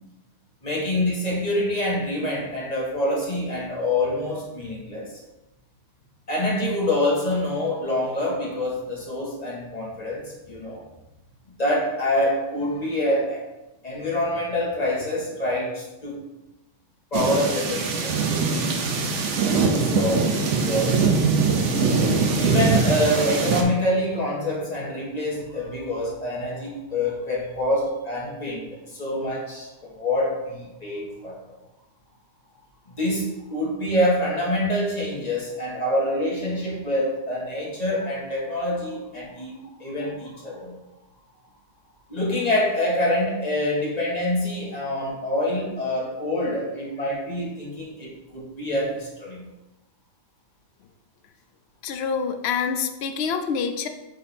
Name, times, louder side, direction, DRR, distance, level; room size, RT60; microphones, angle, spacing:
voice 1, 0.6-5.1 6.3-10.8 11.6-13.4 13.8-16.2 17.1-18.9 19.8-21.1 22.3-31.4 32.9-40.8 42.1-49.5, left 1 dB, 30° left, -4 dB, 1.5 m, -26 dB
sound 1, 17.1-23.6, right 4 dB, 70° right, 1.1 m, -22 dB
voice 2, 51.8-53.9, left 6 dB, 60° left, 7 dB, 0.8 m, -26 dB
8.0 x 2.8 x 4.3 m, 0.98 s
omnidirectional pair, 1.3 m